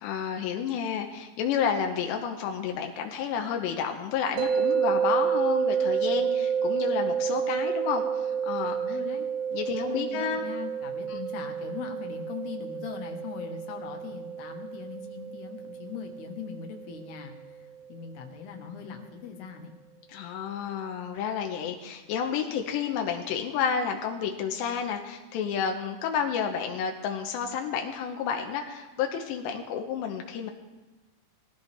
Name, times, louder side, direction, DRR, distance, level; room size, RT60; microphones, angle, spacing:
voice 1, 0.0-8.8 9.5-10.4 11.1-11.2 20.1-30.5, left 7 dB, 90° left, 3 dB, 3.2 m, -30 dB
sound 1, 4.4-17.4, right 7 dB, 70° right, 2.5 m, -30 dB
voice 2, 8.8-9.3 9.7-19.7, left 7 dB, 70° left, 3 dB, 3.3 m, -40 dB
20.5 x 15.0 x 3.4 m, 1.2 s
omnidirectional pair, 4.9 m